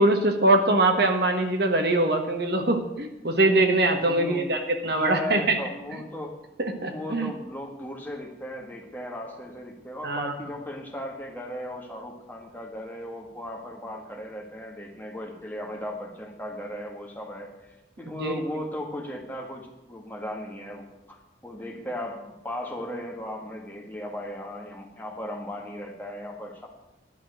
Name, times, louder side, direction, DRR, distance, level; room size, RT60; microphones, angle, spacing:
voice 1, 0.0-5.6 6.6-7.3 10.0-10.3 18.1-18.3, right 2 dB, 60° right, 5 dB, 1.4 m, -23 dB
voice 2, 4.0-4.5 4.8-6.3 6.9-17.6 18.0-26.7, left 1 dB, 10° left, 1 dB, 1.7 m, -36 dB
11.5 x 6.1 x 9.2 m, 0.96 s
head